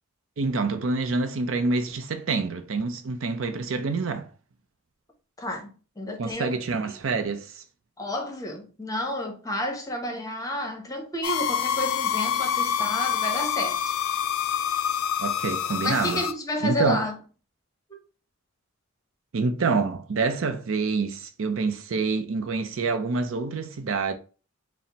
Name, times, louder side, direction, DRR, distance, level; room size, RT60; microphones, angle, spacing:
voice 1, 0.4-4.3 6.2-7.6 15.2-16.2 16.6-17.0 19.3-24.1, right 4 dB, 65° right, 0.5 m, -27 dB
voice 2, 5.4-6.5 6.8-6.9 8.0-13.8 15.8-17.2, left 1 dB, 15° left, 0.8 m, -30 dB
sound 1, 11.2-16.3, left 8 dB, 80° left, 0.4 m, -27 dB
4.1 x 2.0 x 4.0 m
head